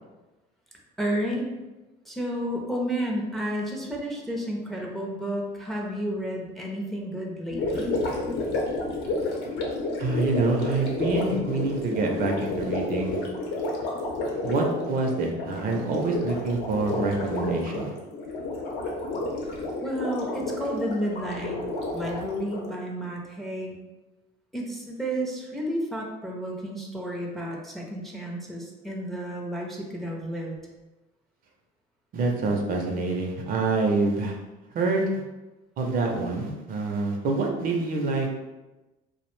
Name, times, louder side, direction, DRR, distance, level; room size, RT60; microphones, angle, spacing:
voice 1, 1.0-1.5 2.1-7.9 19.8-21.6 21.9-23.8 24.5-30.5, equal, ahead, -1 dB, 0.4 m, -31 dB
Gurgling, 7.5-22.8, left 2 dB, 70° left, 0.7 m, -31 dB
voice 2, 10.0-13.2 14.4-17.9 32.1-34.3 34.7-35.2 35.8-38.4, right 3 dB, 50° right, 1 dB, 0.5 m, -26 dB
2.5 x 2.0 x 3.0 m, 1.1 s
cardioid pair, 105°, 18 cm